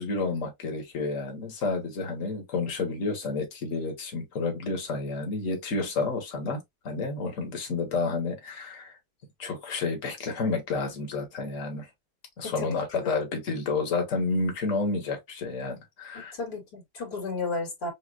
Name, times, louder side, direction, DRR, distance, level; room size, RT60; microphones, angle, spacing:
voice 1, 0.0-8.9 9.4-11.9 12.4-16.3, left 3 dB, 50° left, 1.8 m, -30 dB
voice 2, 12.4-13.2 16.1-17.9, left 3 dB, 75° left, 2.8 m, -34 dB
6.4 x 2.4 x 2.4 m
omnidirectional pair, 1.8 m